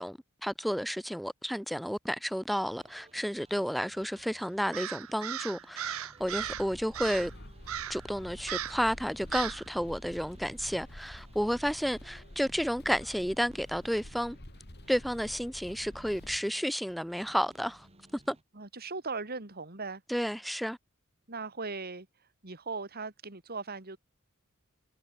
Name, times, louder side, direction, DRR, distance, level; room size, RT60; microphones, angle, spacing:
voice 1, 0.0-7.3 7.9-14.4 14.9-17.9 18.3-18.4 20.1-20.8, equal, ahead, 1.0 m, -31 dB
sound 1, 2.8-18.4, right 1 dB, 30° right, 5.2 m, -60 dB
Crow, 4.7-6.7 6.9-7.3 7.7-8.1 8.5-8.8 9.3-9.6, right 10 dB, 70° right, 0.6 m, -37 dB
sound 2, 6.2-16.4, left 1 dB, 50° left, 3.8 m, -49 dB
voice 2, 18.5-20.0 21.3-24.0, right 4 dB, 50° right, 2.8 m, -39 dB
head